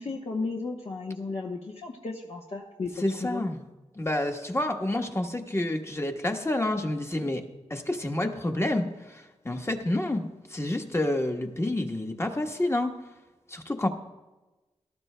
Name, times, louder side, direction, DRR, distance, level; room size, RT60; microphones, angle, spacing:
voice 1, 0.0-2.9 3.2-3.4, left 3 dB, 60° left, -2 dB, 1.0 m, -34 dB
voice 2, 3.0-3.6 3.9-7.4 7.7-12.9 13.5-13.9, left 1 dB, 20° left, 4 dB, 1.2 m, -29 dB
18.0 x 12.0 x 2.2 m, 1.1 s
cardioid pair, 60°, 12 cm